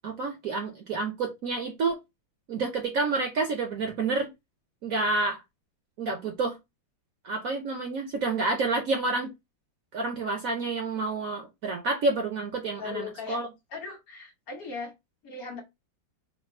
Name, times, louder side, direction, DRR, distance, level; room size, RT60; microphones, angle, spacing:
voice 1, 0.0-2.0 2.5-4.3 4.8-5.4 6.0-6.6 7.2-9.3 9.9-13.4, right 3 dB, 60° right, 1.0 m, -29 dB
voice 2, 12.8-13.4 13.7-14.9 15.2-15.6, left 4 dB, 55° left, 1.4 m, -38 dB
3.3 x 2.4 x 4.3 m
omnidirectional pair, 2.1 m